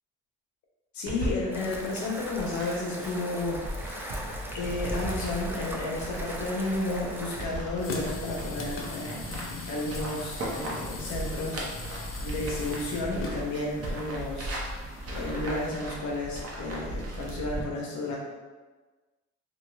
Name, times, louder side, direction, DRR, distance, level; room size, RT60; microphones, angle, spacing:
voice 1, 0.9-4.3 4.5-9.4 9.7-11.6 11.9-14.5 15.1-18.2, left 2 dB, 70° left, -2 dB, 0.9 m, -32 dB
sound 1, 1.1-17.6, right 1 dB, 55° right, 0.8 m, -37 dB
sound 2, 1.5-7.4, equal, 10° right, 0.4 m, -40 dB
sound 3, 7.8-15.7, left 4 dB, 45° left, 0.5 m, -41 dB
2.9 x 2.3 x 3.2 m, 1.3 s
cardioid pair, 90°, 30 cm